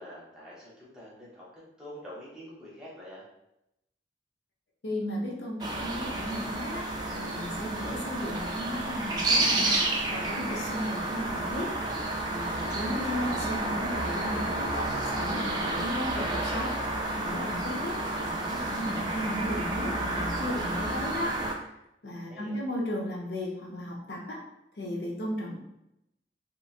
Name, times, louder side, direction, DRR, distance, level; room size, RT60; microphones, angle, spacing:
voice 1, 0.0-1.5 1.8-3.3 22.3-22.6, equal, 5° right, -7 dB, 0.8 m, -46 dB
voice 2, 4.8-9.7 10.1-11.7 12.3-16.7 17.2-21.4 22.0-24.4 24.8-25.6, left 1 dB, 70° left, -2 dB, 0.6 m, -35 dB
sound 1, 5.6-21.5, right 2 dB, 25° right, 0.3 m, -30 dB
3.0 x 2.5 x 2.4 m, 0.84 s
head